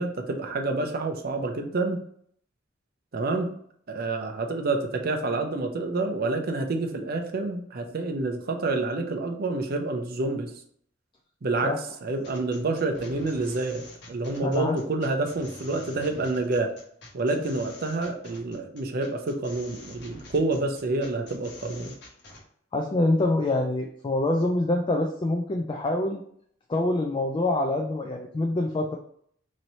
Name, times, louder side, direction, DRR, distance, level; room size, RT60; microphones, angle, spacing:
voice 1, 0.0-2.0 3.1-3.5 3.9-10.5 11.4-11.7 12.0-16.7 17.1-21.9, right 2 dB, 50° right, 4 dB, 0.5 m, -28 dB
sound 1, 12.2-22.4, left 2 dB, 60° left, 1.0 m, -47 dB
voice 2, 14.4-14.8 17.4-17.7 22.7-26.2 26.7-29.0, left 2 dB, 25° left, 3 dB, 0.3 m, -25 dB
3.1 x 2.7 x 4.1 m, 0.64 s
head